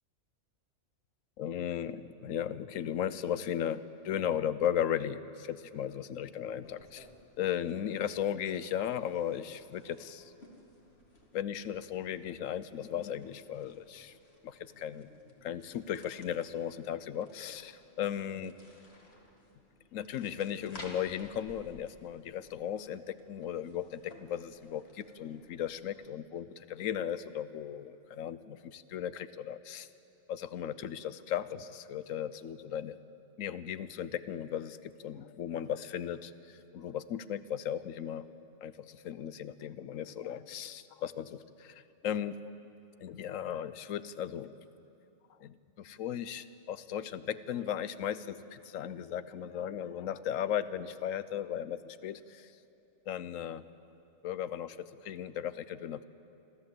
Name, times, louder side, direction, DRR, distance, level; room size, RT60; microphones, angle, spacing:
voice 1, 1.4-7.1 7.4-10.3 11.3-14.1 14.4-15.1 15.4-18.5 19.9-29.9 30.3-33.0 33.4-38.3 38.6-42.4 43.0-44.5 45.4-52.5 53.1-53.6 54.2-56.0, left 9 dB, 80° left, 15 dB, 1.1 m, -36 dB
sound 1, 6.6-26.1, left 1 dB, 50° left, 2.4 m, -57 dB
26.5 x 14.0 x 7.8 m, 3.0 s
omnidirectional pair, 1.3 m